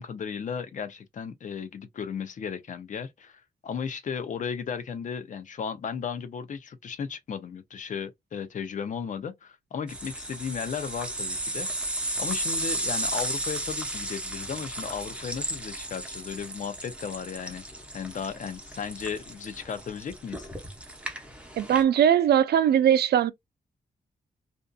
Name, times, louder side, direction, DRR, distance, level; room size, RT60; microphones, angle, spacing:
voice 1, 0.0-11.7 12.2-17.6 17.9-20.5, left 6 dB, 50° left, 0.5 m, -35 dB
sound 1, 9.9-21.8, right 1 dB, 5° right, 0.7 m, -34 dB
voice 2, 21.6-23.3, right 9 dB, 80° right, 0.4 m, -20 dB
2.5 x 2.5 x 2.2 m
wide cardioid pair, 165°, 17 cm